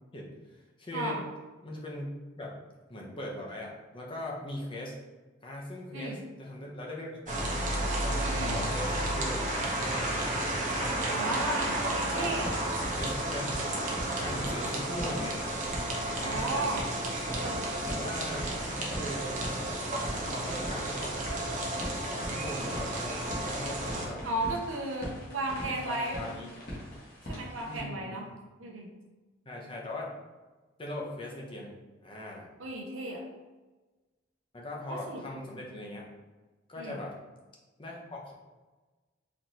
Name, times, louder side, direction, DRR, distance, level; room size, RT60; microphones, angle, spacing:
voice 1, 0.1-1.2 1.6-2.1 2.4-2.6 2.9-5.0 5.4-7.4 8.5-9.4 9.7-10.4 11.1-11.5 12.0-12.4 13.0-13.6 14.2-15.4 16.1-16.6 17.9-19.3 20.0-21.2 22.0-24.2 25.7-26.5 27.7-28.3 29.5-30.2 30.8-32.5 34.5-36.1 36.7-37.2 37.8-38.3, left 1 dB, 25° left, -3 dB, 0.7 m, -40 dB
voice 2, 0.9-1.2 5.9-6.2 8.2-8.6 11.1-12.6 16.1-16.9 17.3-17.7 24.2-26.3 27.3-28.3 28.6-28.9 32.6-33.3 34.9-35.2 36.8-37.0, right 2 dB, 85° right, 1 dB, 0.7 m, -34 dB
sound 1, 7.3-24.1, right 1 dB, 40° right, 0.7 m, -32 dB
sound 2, 12.0-27.8, equal, 45° left, 1.2 m, -42 dB
4.1 x 3.1 x 2.8 m, 1.2 s
head